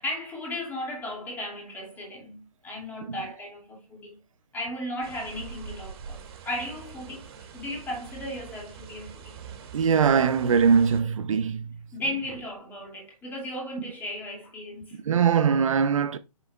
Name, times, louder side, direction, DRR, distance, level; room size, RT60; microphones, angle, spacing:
voice 1, 0.0-4.2 4.5-7.3 7.5-9.4 11.9-15.0, left 1 dB, 10° left, 2.7 m, -35 dB
sound 1, 5.0-11.0, right 7 dB, 40° right, 2.3 m, -44 dB
voice 2, 9.7-11.8 15.0-16.2, right 6 dB, 55° right, 0.8 m, -22 dB
7.6 x 7.0 x 2.4 m
hypercardioid pair, 150°, 20 cm